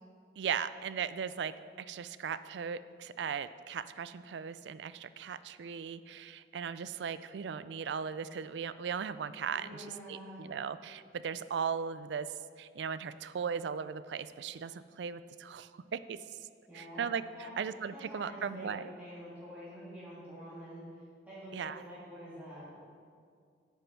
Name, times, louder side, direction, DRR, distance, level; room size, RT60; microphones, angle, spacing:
voice 1, 0.4-12.3 12.6-16.2 16.7-17.2 17.6-18.9 21.5-21.8, right 7 dB, 85° right, 14 dB, 0.4 m, -38 dB
voice 2, 9.5-10.5 16.7-17.0 17.3-17.5 17.9-20.8 21.3-22.9, equal, 10° right, -11 dB, 2.8 m, -47 dB
9.2 x 7.0 x 5.9 m, 2.2 s
head